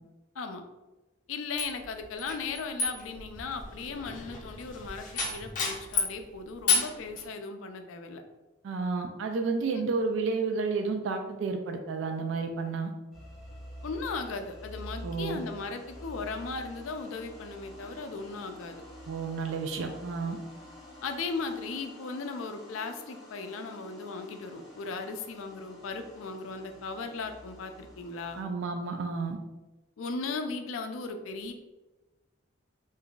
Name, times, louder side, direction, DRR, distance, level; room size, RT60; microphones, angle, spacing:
voice 1, 1.3-8.2 9.7-9.8 13.8-18.8 21.0-28.4 30.0-31.5, left 4 dB, 80° left, 6 dB, 0.4 m, -37 dB
sound 1, 1.6-6.2 6.7-7.2, left 4 dB, 40° left, 0.6 m, -31 dB
voice 2, 8.6-12.9 15.0-15.4 19.1-20.4 28.4-29.4, right 4 dB, 70° right, 4 dB, 0.3 m, -31 dB
sound 2, 13.1-28.4, equal, ahead, 0.8 m, -48 dB
2.6 x 2.3 x 3.7 m, 1.1 s
head